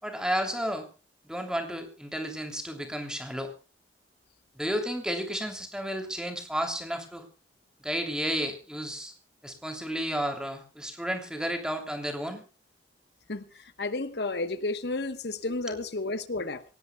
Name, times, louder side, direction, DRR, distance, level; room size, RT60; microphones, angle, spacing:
voice 1, 0.0-0.9 1.2-3.5 4.5-7.2 7.8-9.1 9.4-12.4 15.7-15.8, equal, 5° right, 5 dB, 2.9 m, -32 dB
voice 2, 13.3-16.6, left 2 dB, 60° left, 11 dB, 1.1 m, -32 dB
26.5 x 17.5 x 2.3 m, 0.33 s
head